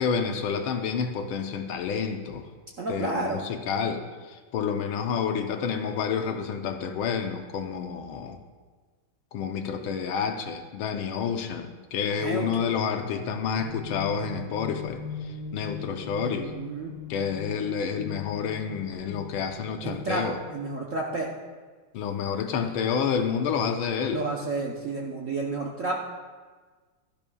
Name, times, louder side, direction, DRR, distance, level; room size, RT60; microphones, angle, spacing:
voice 1, 0.0-2.5 2.9-4.0 4.3-8.4 9.3-16.5 17.1-20.4 21.9-24.2, left 6 dB, 75° left, 6 dB, 1.5 m, -29 dB
voice 2, 2.8-3.4 12.2-12.7 16.3-17.0 19.8-21.3 24.1-26.0, right 3 dB, 55° right, -1 dB, 0.9 m, -31 dB
sound 1, 13.0-20.8, left 4 dB, 60° left, 1.2 m, -40 dB
15.5 x 12.5 x 2.3 m, 1.4 s
omnidirectional pair, 2.4 m